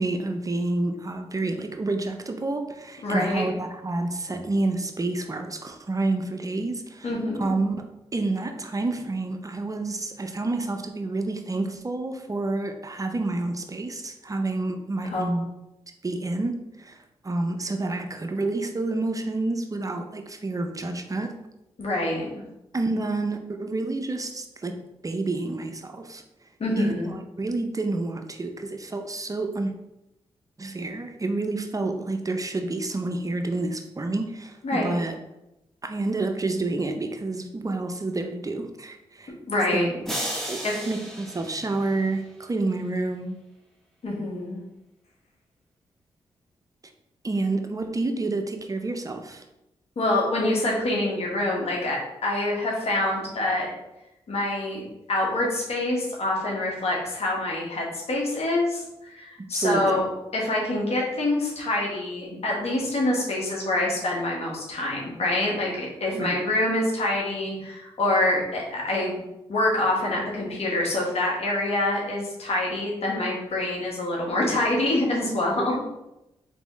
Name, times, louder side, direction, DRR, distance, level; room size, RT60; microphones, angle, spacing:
voice 1, 0.0-7.1 7.4-7.9 8.1-15.5 16.0-21.4 22.7-26.2 26.8-29.7 30.6-35.2 35.8-39.3 39.7-40.1 40.5-43.4 47.2-49.4 59.5-60.0 66.1-66.4 75.6-75.8, right 2 dB, 30° right, 6 dB, 0.5 m, -29 dB
voice 2, 3.0-3.4 7.0-7.4 15.1-15.2 21.8-22.4 26.6-27.1 34.6-35.0 39.5-39.9 40.6-40.8 44.0-44.6 50.0-53.7 54.3-54.8 55.1-69.2 69.5-75.8, left 1 dB, 65° left, -2 dB, 1.4 m, -26 dB
sound 1, 40.1-42.4, equal, 5° left, 1.2 m, -34 dB
4.0 x 3.4 x 3.1 m, 0.90 s
supercardioid pair, 50°, 11 cm